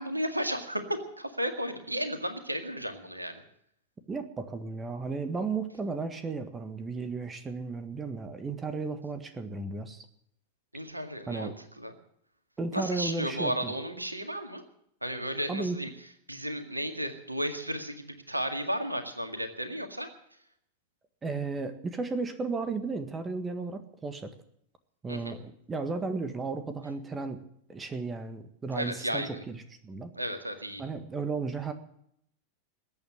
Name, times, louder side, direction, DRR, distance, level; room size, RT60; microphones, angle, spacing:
voice 1, 0.0-3.3 10.7-11.9 12.7-14.6 15.0-15.9 16.3-20.1 25.1-25.3 28.7-29.4 30.2-30.8, equal, 85° right, 7 dB, 1.9 m, -34 dB
voice 2, 4.1-10.0 11.3-11.5 12.6-13.7 15.5-15.8 21.2-24.3 25.0-27.4 27.7-30.1 30.8-31.7, right 4 dB, 15° right, 9 dB, 1.7 m, -34 dB
21.0 x 8.8 x 7.5 m, 0.71 s
figure-of-eight pair, 90°, 0 cm